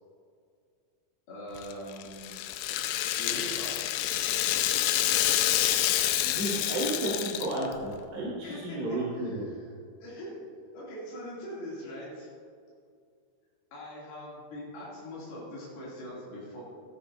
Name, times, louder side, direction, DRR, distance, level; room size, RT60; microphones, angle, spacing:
voice 1, 1.3-2.4 3.2-3.8 8.4-9.7 10.0-10.4 10.7-12.4 13.7-16.6, equal, 75° left, -7 dB, 4.6 m, -42 dB
Rattle (instrument), 1.6-7.8, left 12 dB, 90° left, 1.9 m, -28 dB
voice 2, 5.8-9.4, right 1 dB, 70° right, -10 dB, 4.7 m, -33 dB
13.5 x 13.5 x 2.7 m, 2.2 s
omnidirectional pair, 4.4 m